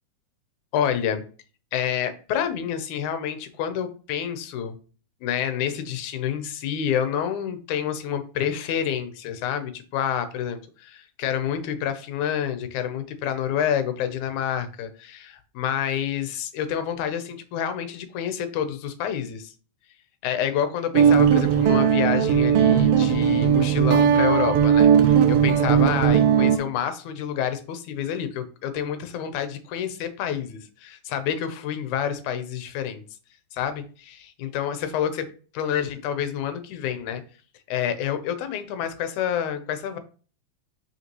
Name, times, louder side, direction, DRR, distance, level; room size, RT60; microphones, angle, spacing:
voice 1, 0.7-1.2 1.7-4.8 5.2-19.5 20.2-33.0 33.5-35.3 35.5-37.2 37.7-40.0, left 9 dB, 75° left, 9 dB, 2.2 m, -28 dB
Guitar, 20.9-26.6, right 8 dB, 90° right, 1.3 m, -18 dB
5.9 x 5.6 x 3.0 m, 0.37 s
omnidirectional pair, 3.5 m